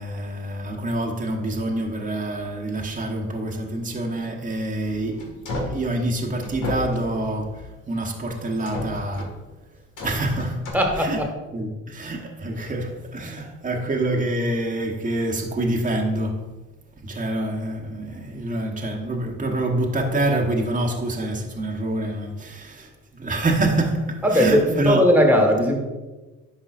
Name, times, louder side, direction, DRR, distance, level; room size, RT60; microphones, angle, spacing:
voice 1, 0.0-9.4 10.0-10.7 11.0-11.2 11.5-16.5 17.0-25.0, right 1 dB, 25° right, 1.1 m, -26 dB
sound 1, 4.8-5.9 6.4-7.7 8.4-9.4 10.0-10.7, left 2 dB, 80° left, 1.8 m, -32 dB
voice 2, 10.7-11.3 24.2-25.8, equal, 5° right, 1.5 m, -18 dB
10.0 x 5.4 x 2.5 m
cardioid pair, 90°, 30 cm